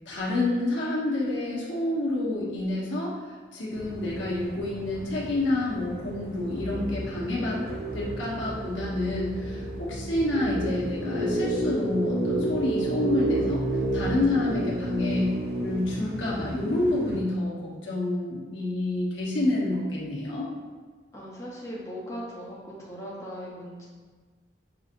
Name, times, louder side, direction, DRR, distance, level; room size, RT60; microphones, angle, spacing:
voice 1, 0.1-3.1 3.5-7.6 7.9-13.6 13.9-15.3 15.6-20.5, left 2 dB, 90° left, -5 dB, 1.0 m, -28 dB
sound 1, 3.7-17.2, right 2 dB, 55° right, 0.6 m, -31 dB
voice 2, 21.1-23.9, equal, 15° left, -6 dB, 0.7 m, -39 dB
6.1 x 2.8 x 2.5 m, 1.4 s
head